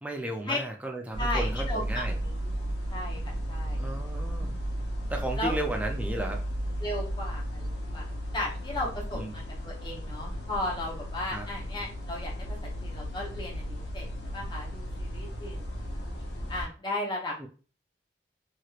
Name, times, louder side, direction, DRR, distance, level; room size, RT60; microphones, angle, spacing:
voice 1, 0.0-2.2 3.8-4.5 5.1-6.4 9.1-9.3 11.3-11.5 17.4-17.5, right 1 dB, 10° right, 2 dB, 0.4 m, -34 dB
sound 1, 1.1-16.7, equal, 90° left, 0.8 m, -34 dB
voice 2, 1.2-2.6 2.9-3.8 4.4-4.6 5.4-5.5 6.8-8.1 8.3-12.3 12.6-14.1 14.3-15.6 16.5-17.5, left 1 dB, 25° left, -3 dB, 0.9 m, -35 dB
3.0 x 3.0 x 2.4 m, 0.37 s
head